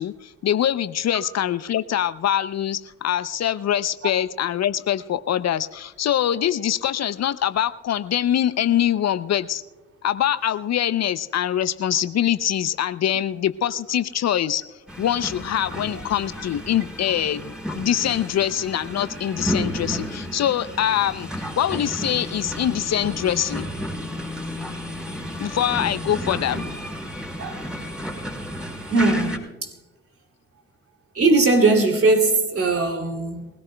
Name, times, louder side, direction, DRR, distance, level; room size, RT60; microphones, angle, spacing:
voice 1, 0.0-9.6 10.0-14.6 15.0-23.7 25.4-26.6, left 10 dB, 55° left, 0.6 m, -24 dB
sound 1, 14.9-29.4, equal, 5° right, 4.0 m, -32 dB
voice 2, 28.9-29.5 31.1-33.5, right 3 dB, 45° right, 2.8 m, -19 dB
23.0 x 17.0 x 2.2 m
hypercardioid pair, 45°, 33 cm